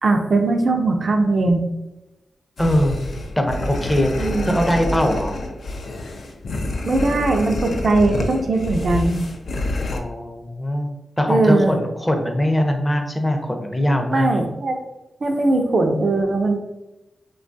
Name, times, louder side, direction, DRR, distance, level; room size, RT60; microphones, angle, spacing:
voice 1, 0.0-1.6 4.2-4.6 6.8-9.2 11.3-11.8 14.1-14.8 15.2-16.6, right 2 dB, 60° right, 4 dB, 0.3 m, -19 dB
sound 1, 2.6-10.0, left 2 dB, 75° left, 0.3 m, -28 dB
voice 2, 2.6-3.0 3.4-5.3 9.9-14.5, equal, 15° left, 4 dB, 0.5 m, -21 dB
2.9 x 2.2 x 2.5 m, 0.98 s
cardioid pair, 50°, 0 cm